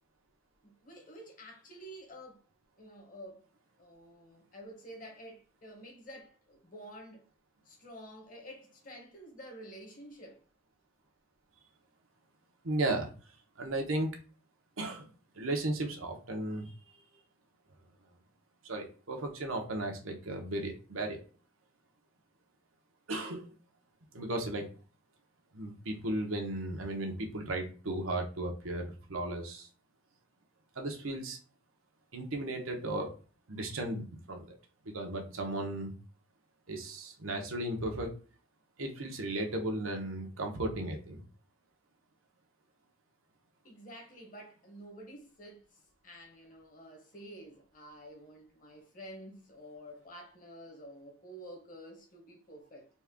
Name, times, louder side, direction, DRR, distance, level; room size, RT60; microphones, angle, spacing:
voice 1, 0.6-2.4 2.8-3.5 3.8-7.2 7.6-10.4 43.6-52.9, equal, 40° left, 1.2 m, -50 dB
voice 2, 12.6-13.1 13.6-14.1 14.8-15.1 15.3-16.7 18.6-21.2 23.1-23.5 24.1-24.7 25.5-29.7 30.7-31.4 32.1-33.1 33.5-34.6 34.8-35.9 36.7-38.1 38.8-41.2, right 1 dB, 90° right, 1.1 m, -35 dB
4.2 x 2.4 x 3.6 m
head